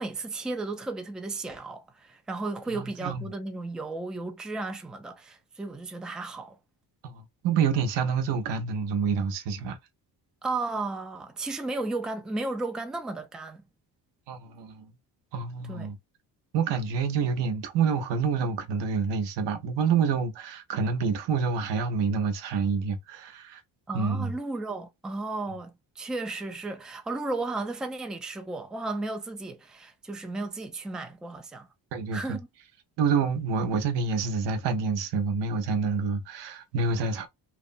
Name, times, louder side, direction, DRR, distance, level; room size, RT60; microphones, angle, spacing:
voice 1, 0.0-6.6 10.4-13.6 15.7-15.9 23.9-31.7 32.1-32.5, right 3 dB, ahead, 0.3 m, -34 dB
voice 2, 2.7-3.2 7.0-9.8 14.3-14.9 15.3-16.0 16.5-23.6 23.9-24.3 31.9-32.4 33.0-37.3, right 5 dB, 80° right, 0.7 m, -27 dB
3.0 x 2.0 x 2.5 m
cardioid pair, 105°, 42 cm